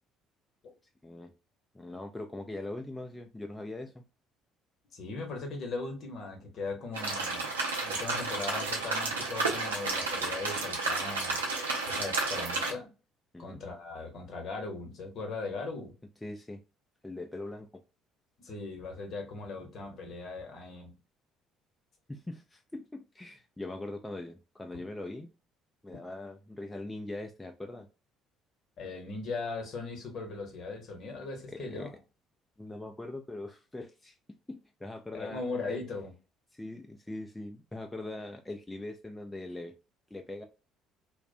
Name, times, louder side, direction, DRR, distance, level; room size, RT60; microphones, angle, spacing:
voice 1, 1.7-4.0 13.3-13.6 16.2-16.6 17.0-17.8 22.1-25.3 25.8-27.9 31.5-31.9 32.6-34.2 34.5-35.4 35.7-35.8 36.5-39.7 40.1-40.4, left 2 dB, 10° left, 0.4 m, -41 dB
voice 2, 4.9-7.6 7.8-11.4 11.8-12.9 13.4-15.9 18.4-20.9 28.8-31.9 35.1-36.1, left 3 dB, 50° left, 0.9 m, -39 dB
sound 1, 6.9-12.7, right 3 dB, 80° right, 0.5 m, -32 dB
2.4 x 2.1 x 2.5 m
figure-of-eight pair, 50°, 0 cm